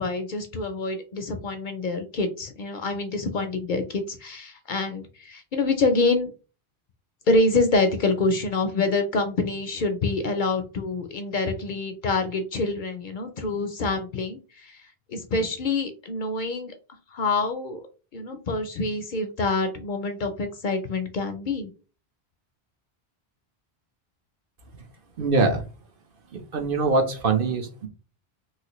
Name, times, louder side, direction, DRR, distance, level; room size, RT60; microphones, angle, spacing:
voice 1, 0.0-6.3 7.3-14.8 15.1-16.7 17.1-17.8 18.1-21.7, left 3 dB, 60° left, 7 dB, 0.6 m, -26 dB
voice 2, 25.2-25.6 26.5-27.9, right 3 dB, 60° right, 5 dB, 0.9 m, -23 dB
3.1 x 2.8 x 2.9 m, 0.34 s
omnidirectional pair, 1.1 m